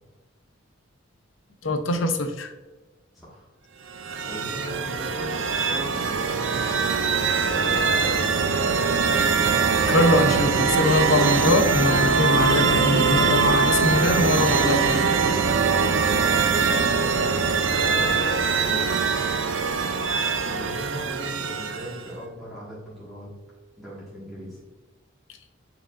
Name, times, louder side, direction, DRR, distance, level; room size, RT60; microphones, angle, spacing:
voice 1, 1.6-2.5 9.7-15.1, left 2 dB, 65° left, 7 dB, 0.7 m, -23 dB
voice 2, 3.1-3.5 4.2-9.1 16.1-18.1 18.5-19.0 20.4-23.3 23.8-24.6, right 1 dB, ahead, -10 dB, 1.7 m, -38 dB
sound 1, 3.9-22.1, right 5 dB, 60° right, 0.5 m, -22 dB
8.5 x 4.8 x 2.5 m, 1.3 s
head